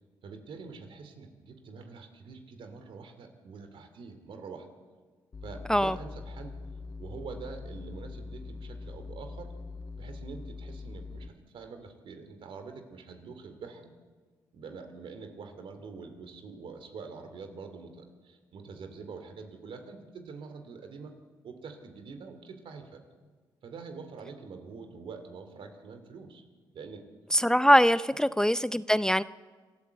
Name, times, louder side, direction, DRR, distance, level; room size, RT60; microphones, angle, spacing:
voice 1, 0.2-4.7 5.4-6.6 7.0-9.5 9.9-13.8 14.5-21.1 21.4-23.0 23.6-26.4 26.7-27.1 28.1-28.2, right 5 dB, 70° right, 7 dB, 2.5 m, -45 dB
sound 1, 5.3-11.3, left 3 dB, 45° left, 1.3 m, -42 dB
voice 2, 27.3-29.2, equal, 5° left, 16 dB, 0.5 m, -22 dB
26.0 x 13.0 x 7.9 m, 1.5 s
supercardioid pair, 50°, 9 cm